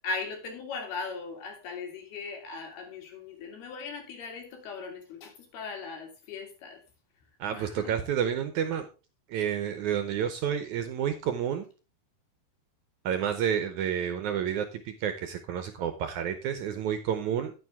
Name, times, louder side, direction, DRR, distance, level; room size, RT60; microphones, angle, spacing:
voice 1, 0.0-6.8 7.5-7.9, left 4 dB, 85° left, 4.5 m, -38 dB
voice 2, 7.4-8.9 9.3-11.7 13.0-17.5, right 8 dB, 75° right, 1.9 m, -30 dB
9.9 x 9.2 x 3.5 m
omnidirectional pair, 4.3 m